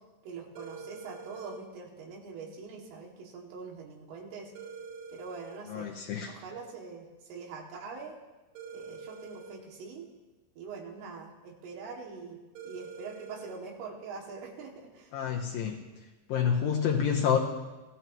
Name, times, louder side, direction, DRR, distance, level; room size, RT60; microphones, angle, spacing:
voice 1, 0.2-4.5 5.1-5.9 6.3-8.2 8.7-10.1 10.6-12.4 12.6-15.1, right 4 dB, 90° right, -2 dB, 5.0 m, -43 dB
sound 1, 0.6-1.6 4.6-5.6 8.6-9.6 12.6-13.6, right 4 dB, 70° right, 3.0 m, -45 dB
voice 2, 5.7-6.3 15.1-15.8 16.3-17.4, left 7 dB, 90° left, 0 dB, 2.0 m, -28 dB
27.5 x 16.0 x 3.1 m, 1.1 s
omnidirectional pair, 5.6 m